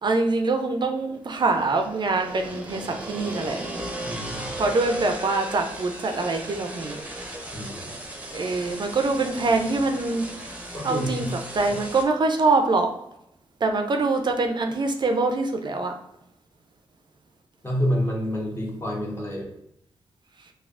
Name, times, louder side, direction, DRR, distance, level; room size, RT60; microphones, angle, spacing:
voice 1, 0.0-3.6 4.6-7.0 8.3-10.2 10.8-11.3 11.5-12.9 13.6-15.9, right 3 dB, 50° right, 5 dB, 0.4 m, -24 dB
sound 1, 1.2-12.0, right 1 dB, 15° right, 0.6 m, -36 dB
voice 2, 4.0-4.6 7.5-7.9 10.7-11.3 17.6-19.5, equal, 25° left, -2 dB, 1.0 m, -28 dB
3.2 x 2.3 x 2.4 m, 0.80 s
cardioid pair, 70°, 10 cm